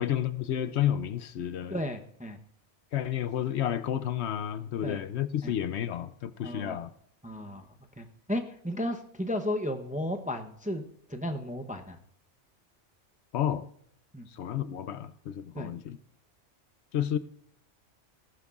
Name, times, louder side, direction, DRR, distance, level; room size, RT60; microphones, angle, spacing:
voice 1, 0.0-1.8 2.9-6.9 13.3-13.7 14.3-16.0 16.9-17.2, left 10 dB, 70° left, 0.8 m, -31 dB
voice 2, 1.7-2.4 4.8-5.0 5.4-5.5 6.4-6.8 7.2-7.6 8.0-12.0 14.1-14.3 15.5-15.7, left 1 dB, 10° right, 0.5 m, -34 dB
18.0 x 11.5 x 2.4 m
omnidirectional pair, 1.2 m